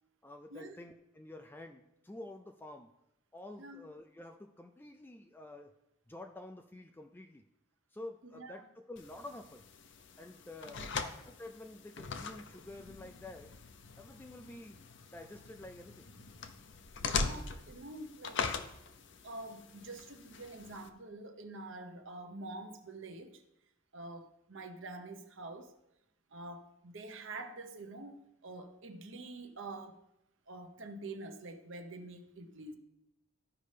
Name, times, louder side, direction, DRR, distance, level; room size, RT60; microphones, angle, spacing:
voice 1, 0.2-2.9 3.3-5.7 6.1-7.4 7.9-9.6 10.2-13.5 14.0-16.1, left 1 dB, 10° left, 0.3 m, -49 dB
voice 2, 8.2-8.7 10.8-10.9 17.1-18.5 19.2-23.4 23.9-25.7 26.3-30.0 30.5-32.8, right 2 dB, 65° right, 0.9 m, -46 dB
sound 1, 9.0-20.9, left 4 dB, 60° left, 0.6 m, -42 dB
14.0 x 5.4 x 3.3 m
head